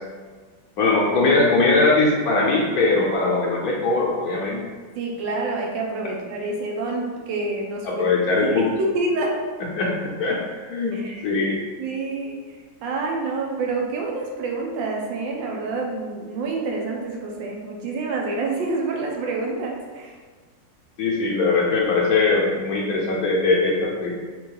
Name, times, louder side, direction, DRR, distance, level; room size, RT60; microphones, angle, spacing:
voice 1, 0.8-4.6 7.8-8.7 9.8-9.9 10.2-11.6 21.0-24.1, left 3 dB, 65° left, -3 dB, 1.0 m, -21 dB
voice 2, 5.0-8.0 8.4-9.3 10.9-11.2 11.8-12.4 12.8-20.2, right 3 dB, 85° right, -1 dB, 1.4 m, -27 dB
3.5 x 3.0 x 3.8 m, 1.5 s
omnidirectional pair, 2.0 m